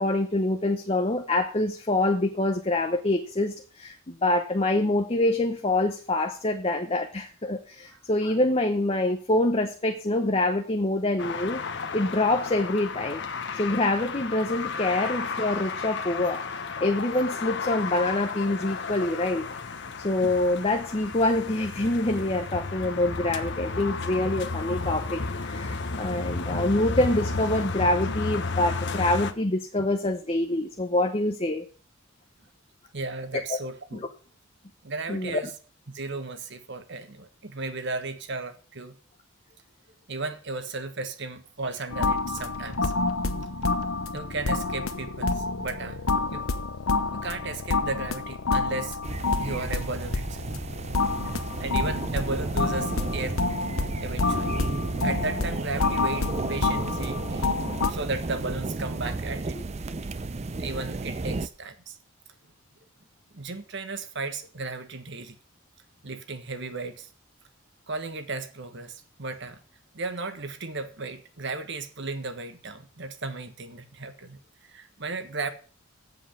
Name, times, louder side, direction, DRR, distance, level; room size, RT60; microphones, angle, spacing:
voice 1, 0.0-11.6 11.9-13.2 13.5-16.5 16.8-19.5 20.0-31.6 33.5-33.6 33.9-34.1 35.1-35.4, left 2 dB, 25° left, 0.8 m, -26 dB
sound 1, 11.2-29.3, left 4 dB, 55° left, 1.1 m, -33 dB
voice 2, 32.9-34.1 34.8-35.5 35.9-39.0 40.1-42.9 44.1-46.5 47.1-49.0 49.4-50.4 51.2-53.4 54.0-59.6 60.6-62.0 63.3-65.4 66.0-67.1 67.9-68.9 69.2-69.6 69.9-74.4 74.7-75.5, right 3 dB, 55° right, 1.4 m, -35 dB
sound 2, 41.9-57.9, left 3 dB, 80° left, 1.0 m, -28 dB
sound 3, 49.0-61.5, right 3 dB, 30° right, 0.5 m, -33 dB
8.0 x 7.3 x 8.3 m
head